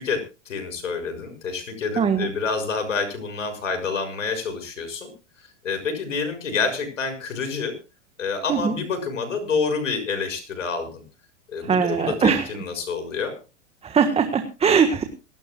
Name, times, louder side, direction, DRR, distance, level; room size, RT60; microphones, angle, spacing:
voice 1, 0.0-5.1 5.6-7.7 8.2-11.0 11.5-13.3, left 5 dB, 85° left, 7 dB, 6.4 m, -28 dB
voice 2, 2.0-2.3 8.5-8.8 11.6-12.5 13.8-15.0, right 6 dB, 15° right, 8 dB, 1.5 m, -21 dB
27.0 x 12.5 x 2.3 m, 0.31 s
hypercardioid pair, 115°, 37 cm